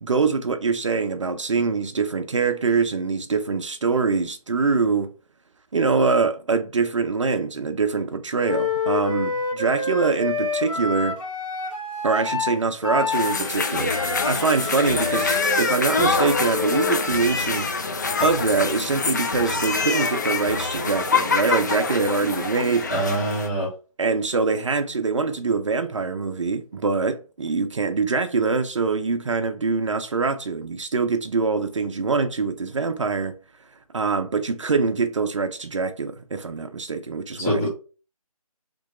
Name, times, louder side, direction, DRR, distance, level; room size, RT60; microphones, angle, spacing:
voice 1, 0.0-5.1 5.7-11.2 12.0-17.7 18.2-22.9 24.0-33.3 33.9-37.7, right 4 dB, 55° right, 0.6 m, -24 dB
Wind instrument woodwind instrument, 8.4-17.0, left 4 dB, 60° left, 1.8 m, -28 dB
sound 1, 13.1-23.5, left 4 dB, 30° left, 0.4 m, -25 dB
voice 2, 22.9-23.7 37.4-37.7, right 1 dB, 10° left, 1.7 m, -24 dB
3.3 x 3.0 x 4.2 m
figure-of-eight pair, 155°, 19 cm